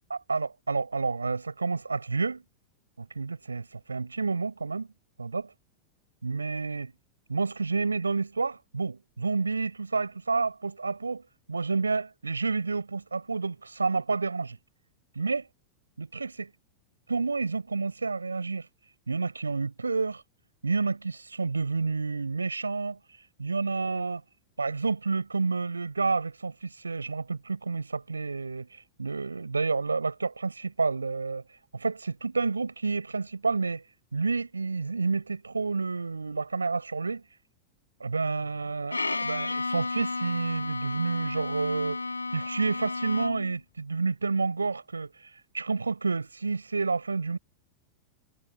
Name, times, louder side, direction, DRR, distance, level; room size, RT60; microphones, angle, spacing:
voice 1, 0.1-2.4 3.0-4.9 5.2-5.5 6.2-6.9 7.3-11.2 11.5-14.6 15.1-15.5 16.0-16.5 17.1-18.7 19.1-20.2 20.6-23.0 23.4-24.2 24.6-31.4 31.7-33.8 34.1-37.2 38.0-42.1 42.3-47.4, right 4 dB, 80° right, 4.3 m, -29 dB
Bowed string instrument, 38.9-43.6, left 3 dB, 80° left, 3.8 m, -32 dB
figure-of-eight pair, 90°, 0 cm